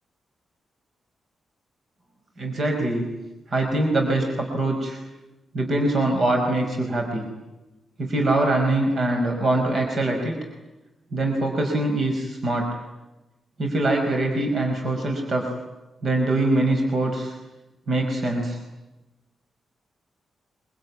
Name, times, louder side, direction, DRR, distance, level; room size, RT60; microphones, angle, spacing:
voice 1, 2.4-3.0 3.5-5.0 5.5-7.2 8.0-10.3 11.1-12.7 13.6-15.4 16.0-17.3 17.9-18.6, right 2 dB, 40° right, 2 dB, 4.9 m, -23 dB
25.0 x 24.5 x 9.6 m, 1.0 s
wide cardioid pair, 175°, 0 cm